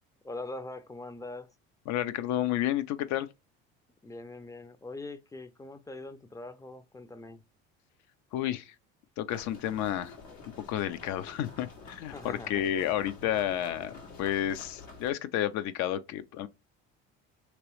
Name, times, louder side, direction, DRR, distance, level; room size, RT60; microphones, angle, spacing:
voice 1, 0.2-1.5 4.0-7.4 12.1-12.7, left 2 dB, 10° left, 0.4 m, -42 dB
voice 2, 1.9-3.3 8.3-8.7 9.2-10.2 10.7-16.5, left 12 dB, 60° left, 0.5 m, -31 dB
sound 1, 9.3-15.1, left 3 dB, 85° left, 1.6 m, -48 dB
3.0 x 2.9 x 3.0 m
supercardioid pair, 80°, 32 cm